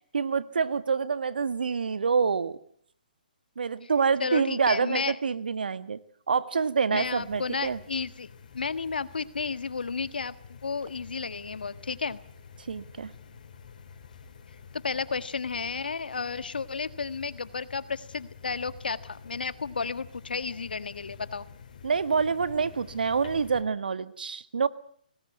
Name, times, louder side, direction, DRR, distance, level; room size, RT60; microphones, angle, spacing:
voice 1, 0.1-2.6 3.6-6.0 6.3-7.8 12.7-13.1 21.8-24.7, right 5 dB, 80° right, 13 dB, 1.7 m, -27 dB
voice 2, 4.2-5.2 6.9-8.3 8.5-10.3 10.6-12.2 14.7-21.5, left 5 dB, 85° left, 13 dB, 1.6 m, -32 dB
sound 1, 7.0-23.6, left 6 dB, 55° left, 5.3 m, -49 dB
24.5 x 19.5 x 9.3 m, 0.62 s
hypercardioid pair, 150°, 5 cm